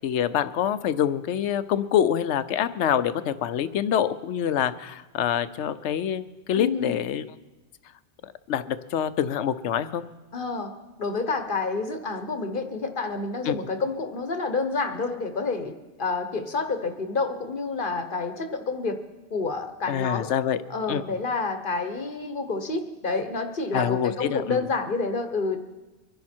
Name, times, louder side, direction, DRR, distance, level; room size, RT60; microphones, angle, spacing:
voice 1, 0.0-7.2 8.2-10.0 13.4-13.5 19.9-20.6 20.9-21.0 23.7-24.6, left 9 dB, 70° left, 13 dB, 0.9 m, -26 dB
voice 2, 6.5-7.0 10.3-10.7 11.0-15.7 16.0-19.0 19.3-20.3 20.7-25.6, left 3 dB, 45° left, 7 dB, 1.1 m, -28 dB
24.5 x 10.5 x 4.4 m, 1.1 s
omnidirectional pair, 1.3 m